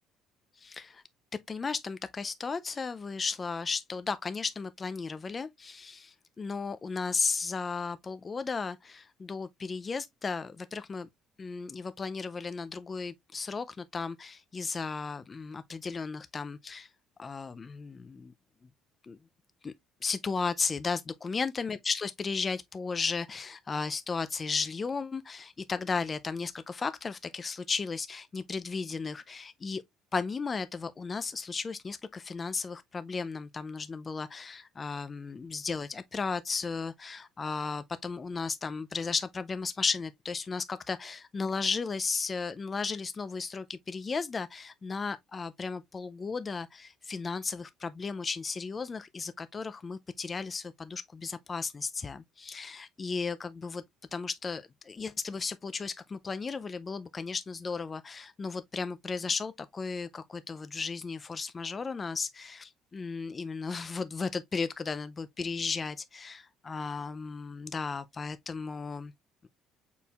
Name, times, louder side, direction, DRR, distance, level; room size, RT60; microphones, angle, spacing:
voice 1, 0.6-1.0 1.5-11.1 11.4-16.9 17.2-18.3 19.0-19.2 19.6-19.7 20.0-29.8 30.1-53.8 54.1-69.1 69.4-69.5, left 4 dB, 20° left, 0.3 m, -35 dB
5.4 x 4.3 x 2.3 m
cardioid pair, 150°, 0 cm